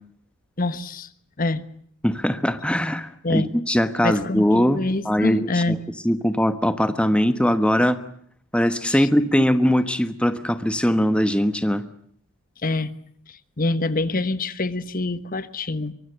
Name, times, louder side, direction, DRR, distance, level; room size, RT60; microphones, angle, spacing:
voice 1, 0.6-1.1 1.4-1.6 3.2-3.5 4.0-5.8 8.9-9.1 12.6-12.9 13.3-15.9, left 2 dB, 40° left, 14 dB, 1.2 m, -25 dB
voice 2, 2.0-5.8 6.0-8.0 8.5-11.8, equal, 5° left, 11 dB, 1.2 m, -21 dB
24.0 x 23.5 x 8.0 m, 0.63 s
head